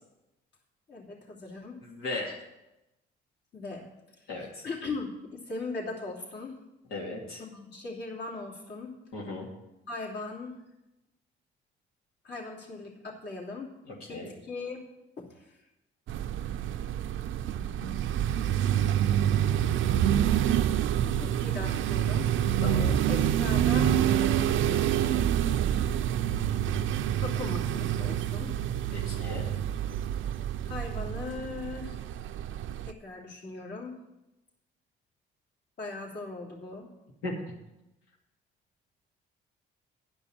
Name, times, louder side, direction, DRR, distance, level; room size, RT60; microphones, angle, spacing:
voice 1, 0.9-1.8 3.5-6.6 7.4-8.9 9.9-10.6 12.2-13.7 14.1-14.9 15.2-15.6 17.5-18.4 21.2-22.3 22.5-22.6 23.1-24.0 24.3-25.0 27.2-28.5 30.6-32.0 32.8-34.0 35.8-36.9, left 3 dB, 55° left, -2 dB, 3.1 m, -39 dB
voice 2, 1.8-2.4 4.3-4.6 6.9-7.4 9.1-9.5 13.9-14.3 22.6-23.0 28.9-29.5 37.2-37.3, left 2 dB, 85° left, -4 dB, 2.4 m, -36 dB
sound 1, 16.1-32.9, right 10 dB, 75° right, 0.6 m, -27 dB
11.5 x 5.4 x 8.6 m, 0.94 s
cardioid pair, 80°, 21 cm